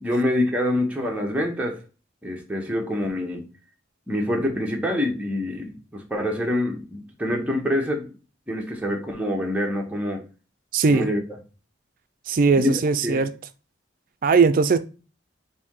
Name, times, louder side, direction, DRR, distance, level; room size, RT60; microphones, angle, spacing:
voice 1, 0.0-1.8 2.2-3.5 4.1-8.1 8.5-10.2 10.9-11.2 12.5-13.2, left 1 dB, 5° right, 0.8 m, -26 dB
voice 2, 10.7-11.1 12.3-13.3 14.2-14.8, right 4 dB, 45° right, 0.3 m, -19 dB
4.3 x 2.7 x 3.5 m
head